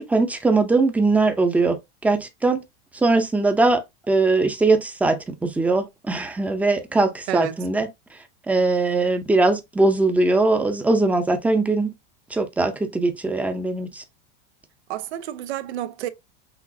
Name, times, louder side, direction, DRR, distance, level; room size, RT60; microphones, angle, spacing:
voice 1, 0.0-2.6 3.0-7.9 8.5-11.9 12.3-14.0, right 3 dB, 5° right, 0.5 m, -21 dB
voice 2, 7.3-7.6 14.9-16.1, right 12 dB, 90° right, 0.7 m, -29 dB
6.0 x 2.5 x 2.6 m
supercardioid pair, 145°, 32 cm